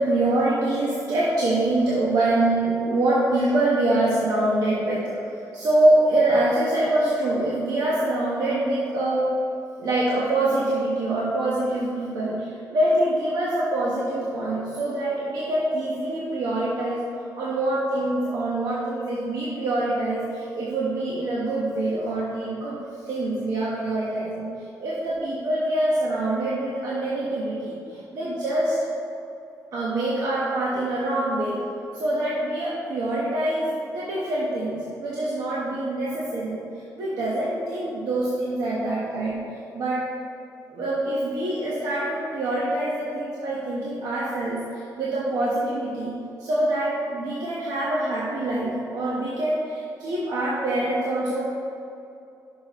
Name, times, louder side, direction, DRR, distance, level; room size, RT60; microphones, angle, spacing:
voice 1, 0.0-5.2 5.5-9.3 9.8-22.8 23.1-28.8 29.7-31.6 31.9-39.4 39.7-40.0 40.7-51.4, right 1 dB, 70° right, -7 dB, 1.3 m, -25 dB
10.5 x 6.2 x 3.1 m, 2.7 s
cardioid pair, 145°, 7 cm